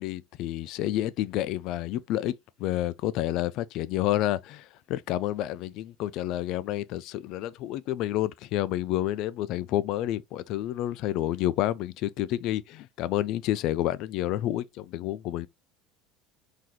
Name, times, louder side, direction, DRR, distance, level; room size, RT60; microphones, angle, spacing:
voice 1, 0.0-2.3 2.6-15.5, left 14 dB, 50° left, 0.3 m, -29 dB
3.9 x 2.7 x 3.0 m
cardioid pair, 165°, 0 cm